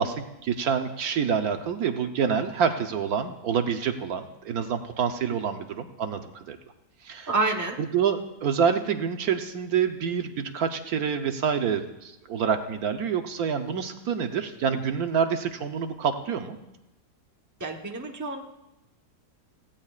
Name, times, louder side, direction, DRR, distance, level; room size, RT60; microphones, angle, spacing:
voice 1, 0.0-6.6 7.0-7.3 7.8-16.6, right 7 dB, 70° right, 6 dB, 1.3 m, -27 dB
voice 2, 7.3-7.8 17.6-18.4, right 3 dB, 15° right, 2 dB, 1.0 m, -28 dB
18.0 x 15.5 x 2.4 m, 0.96 s
omnidirectional pair, 1.7 m